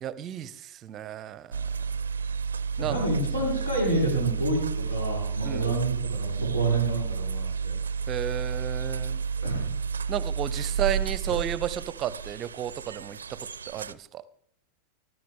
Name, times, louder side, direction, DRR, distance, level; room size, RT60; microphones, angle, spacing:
voice 1, 0.0-1.7 2.8-3.0 5.4-5.7 8.1-9.2 10.1-14.2, right 10 dB, 30° right, 0.7 m, -33 dB
sound 1, 1.5-13.9, right 6 dB, 70° right, 0.5 m, -31 dB
voice 2, 2.9-7.7 9.4-9.7, right 2 dB, 75° left, 6.3 m, -28 dB
21.0 x 14.0 x 3.6 m
figure-of-eight pair, 90°, 0 cm